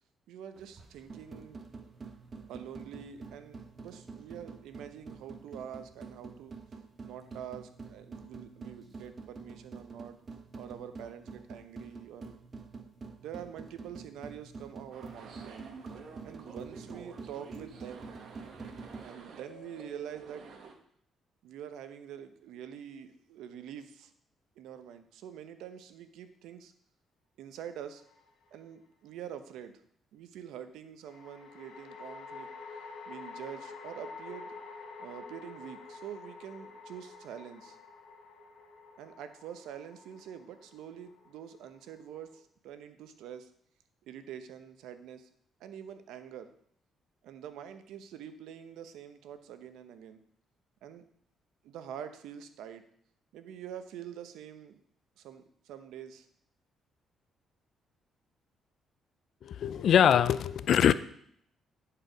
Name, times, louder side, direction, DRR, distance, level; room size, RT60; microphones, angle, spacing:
voice 1, 0.3-1.6 2.5-6.5 7.0-10.2 10.5-12.4 13.2-15.7 16.2-18.1 19.0-20.5 21.4-24.1 24.6-26.7 27.4-28.0 28.5-29.8 30.1-32.5 33.1-34.5 35.0-37.8 39.0-43.5 44.0-45.3 45.6-46.5 47.2-50.2 50.8-51.1 51.6-52.8 53.3-54.8 55.2-56.3, right 9 dB, 90° right, 10 dB, 0.8 m, -46 dB
sound 1, 0.6-19.1, right 4 dB, 40° right, 1.2 m, -47 dB
sound 2, 14.9-20.7, right 5 dB, 65° right, 1.4 m, -49 dB
sound 3, 27.9-28.6 31.1-42.4, left 4 dB, 85° left, 1.3 m, -48 dB
voice 2, 59.4-60.9, left 9 dB, 65° left, 15 dB, 0.4 m, -23 dB
11.0 x 4.8 x 5.1 m, 0.65 s
cardioid pair, 90°, 0 cm